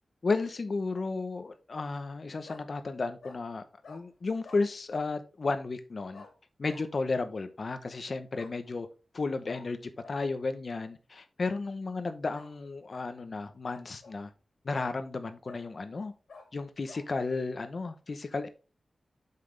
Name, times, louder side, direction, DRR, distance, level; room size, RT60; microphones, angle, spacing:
voice 1, 0.2-6.2 6.6-8.9 9.1-9.8 10.1-14.3 14.6-16.1 16.5-18.5, left 3 dB, 50° left, 0.8 m, -33 dB
Bark, 0.8-1.1 2.5-2.7 3.2-3.4 3.8-4.0 4.4-4.7 6.1-6.3 6.7-6.9 8.3-8.5 9.5-9.6 10.0-10.2 12.3-12.5 12.9-13.1 13.6-14.3 14.8-14.9 15.5-15.7 16.3-16.5 16.9-17.1, left 3 dB, 80° left, 2.1 m, -50 dB
7.7 x 5.8 x 3.3 m
wide cardioid pair, 130°, 0 cm